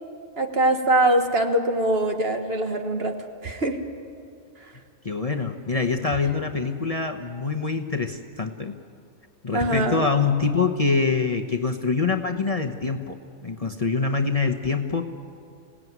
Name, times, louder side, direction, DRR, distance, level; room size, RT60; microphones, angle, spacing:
voice 1, 0.4-3.1 3.4-3.8 9.5-10.1, right 1 dB, 50° right, 5 dB, 1.7 m, -22 dB
voice 2, 5.0-8.8 9.4-15.1, left 4 dB, 30° left, 3 dB, 0.9 m, -25 dB
26.5 x 17.5 x 9.4 m, 2.5 s
omnidirectional pair, 1.3 m